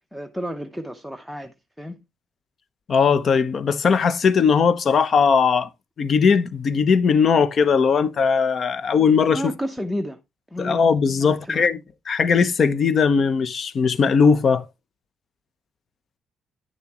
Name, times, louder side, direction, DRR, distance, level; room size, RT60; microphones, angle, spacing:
voice 1, 0.1-2.0 9.3-10.2 10.5-10.8 11.2-11.6, equal, ahead, 0.8 m, -31 dB
voice 2, 2.9-5.7 6.0-9.5 10.6-11.8 12.1-14.7, left 5 dB, 50° left, 0.8 m, -19 dB
10.0 x 7.1 x 3.0 m
cardioid pair, 90°, 0 cm